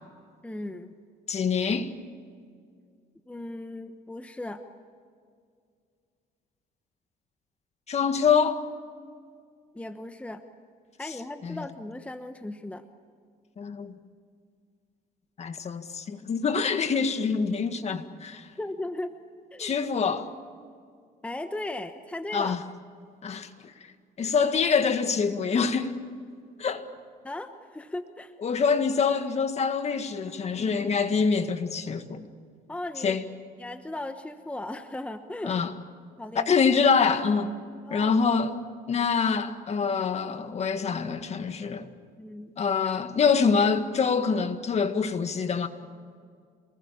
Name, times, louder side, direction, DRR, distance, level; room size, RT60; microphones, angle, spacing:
voice 1, 0.4-1.0 3.3-4.6 9.7-10.4 11.0-12.8 18.6-19.1 19.5-19.7 21.2-22.5 27.2-28.3 32.7-33.2 33.6-35.6 36.2-36.5 37.9-38.1 38.9-39.1 42.2-42.5, left 1 dB, 10° left, 1.1 m, -37 dB
voice 2, 1.3-1.9 7.9-8.6 11.4-11.6 13.6-13.9 15.4-18.5 19.6-20.3 22.3-22.6 23.2-23.5 24.2-25.9 26.6-26.8 28.4-32.2 33.0-33.2 35.4-35.7 36.4-37.5 37.9-38.5 38.9-41.9 42.6-45.7, left 5 dB, 40° left, 1.9 m, -25 dB
27.5 x 20.0 x 8.7 m
cardioid pair, 110°, 17 cm